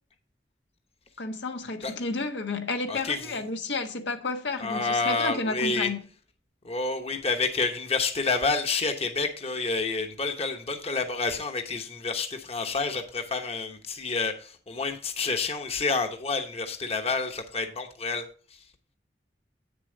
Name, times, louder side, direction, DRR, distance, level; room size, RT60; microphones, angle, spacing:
voice 1, 1.2-6.0, left 3 dB, 85° left, 1.3 m, -31 dB
voice 2, 2.9-3.3 4.6-5.9 6.6-18.2 18.5-18.6, left 4 dB, 35° left, 1.0 m, -29 dB
8.8 x 6.9 x 3.9 m
head